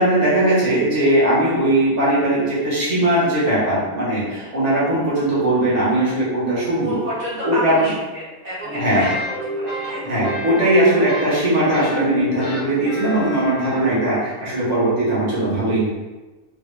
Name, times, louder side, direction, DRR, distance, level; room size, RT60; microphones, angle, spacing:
voice 1, 0.0-7.0 7.4-7.9 8.7-9.1 10.0-15.9, right 1 dB, 30° right, -9 dB, 1.3 m, -19 dB
voice 2, 6.8-10.4, equal, 60° right, -9 dB, 1.3 m, -30 dB
sound 1, 8.6-14.3, left 1 dB, 30° left, 1.0 m, -29 dB
3.7 x 2.5 x 3.3 m, 1.2 s
omnidirectional pair, 1.5 m